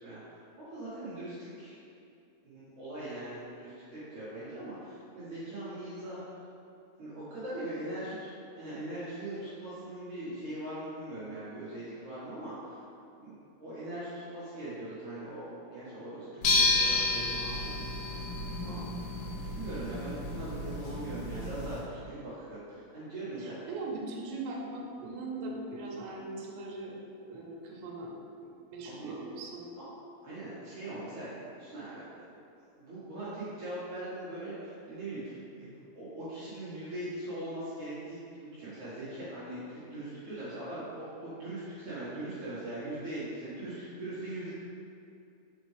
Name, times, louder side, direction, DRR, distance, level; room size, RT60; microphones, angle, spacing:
voice 1, 0.0-1.8 2.4-6.2 7.0-8.3 8.6-12.8 13.1-18.8 19.5-23.7 28.8-29.1 30.2-32.2 32.8-35.7 35.9-44.5, right 1 dB, 65° right, -12 dB, 1.9 m, -41 dB
sound 1, 16.4-21.8, left 2 dB, 75° left, 2.5 m, -31 dB
voice 2, 23.4-27.0 27.3-28.1 28.4-29.8, right 2 dB, 85° right, -1 dB, 2.9 m, -40 dB
5.8 x 5.3 x 3.2 m, 2.6 s
omnidirectional pair, 5.1 m